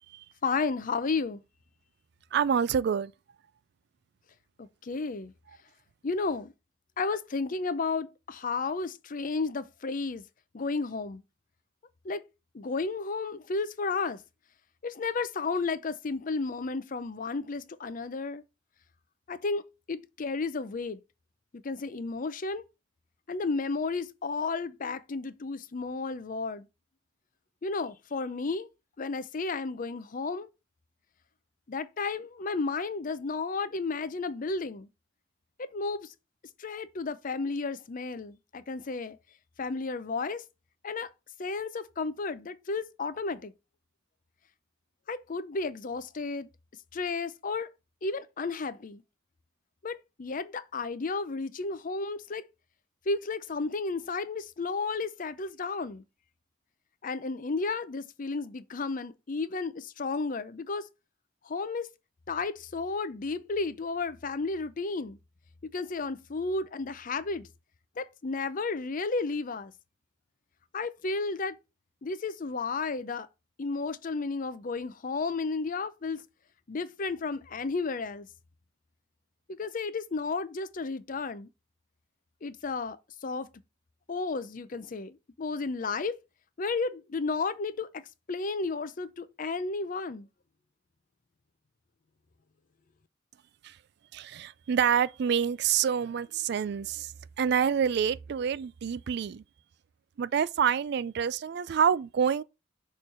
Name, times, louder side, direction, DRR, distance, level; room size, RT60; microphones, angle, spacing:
voice 1, 0.4-1.4 4.6-5.3 6.0-6.5 7.0-10.2 10.5-11.2 12.0-12.2 12.5-14.2 14.8-18.4 19.3-21.0 21.6-22.6 23.3-26.7 27.6-28.7 29.0-30.5 31.7-34.9 35.7-36.1 36.6-39.2 39.6-40.4 40.8-41.1 41.4-43.5 45.1-46.5 46.9-47.7 48.0-49.0 49.8-52.4 53.1-56.0 57.0-60.9 61.4-61.9 62.3-65.2 65.6-67.5 68.0-69.7 70.7-71.6 72.0-73.3 73.6-76.2 76.7-78.3 79.6-81.5 82.4-83.5 84.1-86.2 86.6-87.9 88.3-90.3, left 4 dB, 45° left, 0.5 m, -33 dB
voice 2, 2.3-3.1 93.6-93.8 94.1-97.1 97.4-99.4 100.2-102.4, right 7 dB, 60° right, 0.3 m, -27 dB
6.5 x 3.2 x 5.5 m
head